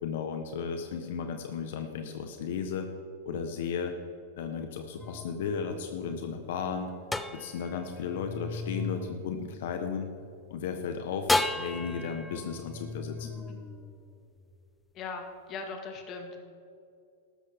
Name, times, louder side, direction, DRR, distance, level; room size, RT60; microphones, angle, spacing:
voice 1, 0.0-2.9 3.2-3.9 4.4-6.9 7.3-10.1 10.5-13.3, left 6 dB, 70° left, 6 dB, 1.0 m, -34 dB
sound 1, 5.0-10.3 11.3-14.6, left 2 dB, 5° left, 0.5 m, -35 dB
voice 2, 14.9-16.4, left 4 dB, 30° left, 4 dB, 1.8 m, -39 dB
14.0 x 12.5 x 3.6 m, 2.6 s
supercardioid pair, 140°, 0 cm